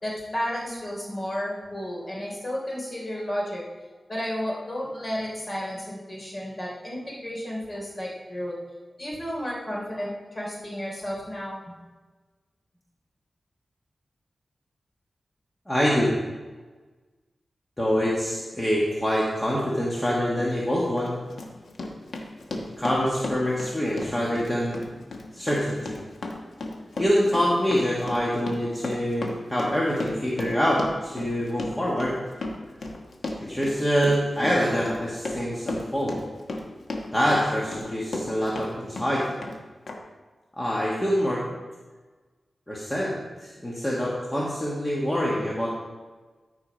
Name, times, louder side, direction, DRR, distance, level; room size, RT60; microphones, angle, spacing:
voice 1, 0.0-3.6 4.1-8.5 9.0-11.6, equal, 40° left, -3 dB, 3.2 m, -32 dB
voice 2, 15.7-16.1 17.8-21.1 22.8-24.8 25.3-26.0 27.0-32.1 33.4-36.2 37.1-39.4 40.6-41.4 42.7-43.2 43.4-45.7, equal, 15° left, -5 dB, 1.5 m, -25 dB
Run, 20.4-20.5 21.0-38.7 39.0-39.6 39.9-40.0, left 2 dB, 80° left, 1.2 m, -35 dB
13.5 x 4.8 x 5.1 m, 1.3 s
wide cardioid pair, 90°, 0 cm